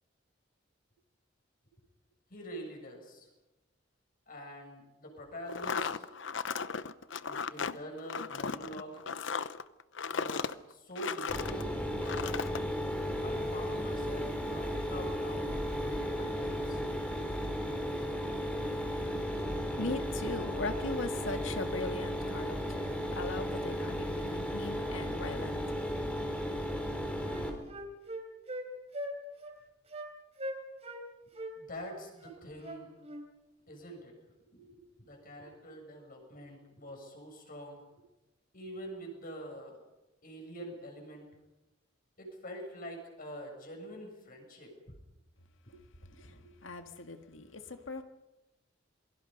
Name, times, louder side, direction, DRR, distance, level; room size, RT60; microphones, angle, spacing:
voice 1, 2.3-3.3 4.3-5.9 7.2-9.0 10.1-11.8 13.2-16.8 31.6-32.9 33.7-34.2 34.5-37.8 38.5-39.8 40.2-41.3 42.2-45.0 45.7-45.8 46.0-46.5, equal, 45° left, 7.0 m, -46 dB
sound 1, 5.5-11.6 12.0-12.6, left 5 dB, 70° left, 0.8 m, -36 dB
Mechanisms, 11.3-27.5, equal, 5° left, 3.6 m, -35 dB
voice 2, 19.8-25.7 46.2-46.4 46.6-48.0, left 3 dB, 85° left, 1.9 m, -39 dB
Wind instrument woodwind instrument, 26.4-26.6 26.9-28.7 28.9-29.1 29.4-29.6 29.9-30.1 30.4-31.0 31.3-33.2, right 1 dB, 35° right, 3.6 m, -41 dB
27.5 x 22.5 x 5.4 m
head